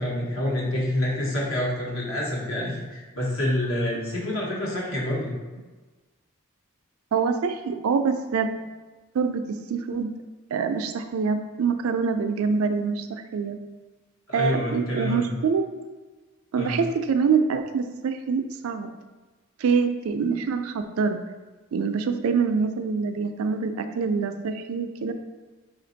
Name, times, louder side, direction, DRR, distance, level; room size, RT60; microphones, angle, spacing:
voice 1, 0.0-5.3 14.3-15.3 16.6-16.8, left 1 dB, 70° left, -4 dB, 1.2 m, -27 dB
voice 2, 7.1-8.6 9.1-10.2 10.5-13.6 14.3-15.6 16.5-18.9 19.6-21.2 21.7-25.1, right 5 dB, 80° right, 8 dB, 0.4 m, -25 dB
5.0 x 2.5 x 3.9 m, 1.3 s
head